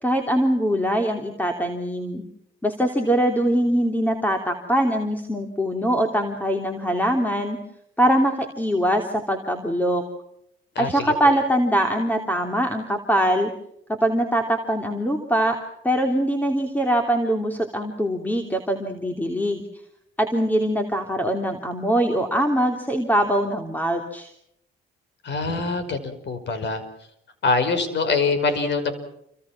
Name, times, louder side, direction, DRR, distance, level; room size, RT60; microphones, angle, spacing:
voice 1, 0.0-2.2 2.6-7.6 8.0-10.0 10.8-13.5 14.0-15.6 15.8-19.6 20.2-24.3, equal, 10° left, 4 dB, 3.2 m, -22 dB
voice 2, 10.8-11.1 25.2-26.8 27.4-28.9, left 4 dB, 60° left, 11 dB, 5.5 m, -24 dB
29.0 x 25.0 x 6.1 m, 0.76 s
cardioid pair, 90°, 20 cm